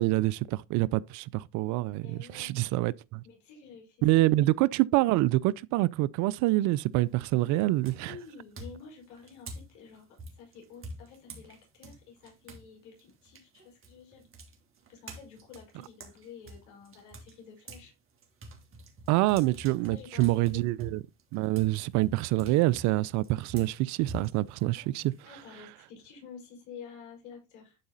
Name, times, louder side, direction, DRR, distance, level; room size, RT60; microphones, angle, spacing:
voice 1, 0.0-3.2 4.0-8.2 19.1-21.0 21.3-25.1, right 18 dB, 65° right, 0.5 m, -26 dB
voice 2, 2.0-2.6 3.2-4.2 8.0-14.2 14.9-17.9 19.9-20.6 25.2-27.8, left 6 dB, 65° left, 5.6 m, -50 dB
sound 1, 6.9-7.3 7.8-12.7 13.0-17.9 18.2-25.6, right 1 dB, 40° right, 3.2 m, -46 dB
11.5 x 4.8 x 4.0 m
supercardioid pair, 85°, 31 cm